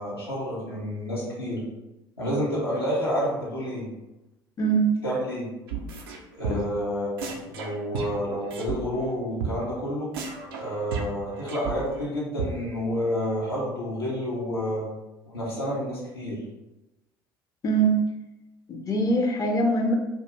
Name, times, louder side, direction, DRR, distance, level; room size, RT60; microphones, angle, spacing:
voice 1, 0.0-1.6 2.2-3.9 5.0-5.5 6.4-10.1 10.6-14.8 15.3-16.4, equal, 85° left, -7 dB, 0.6 m, -29 dB
voice 2, 4.6-4.9 6.5-6.6 17.6-18.0 18.7-19.9, right 3 dB, 30° left, 2 dB, 0.4 m, -23 dB
sound 1, 5.7-6.2 6.4-6.8 7.2-8.8 9.0-9.1 9.4-9.5 9.8-9.9 10.1-12.1 12.4-12.5, right 6 dB, 70° right, 0.4 m, -33 dB
2.3 x 2.2 x 3.0 m, 1.0 s
figure-of-eight pair, 60°, 13 cm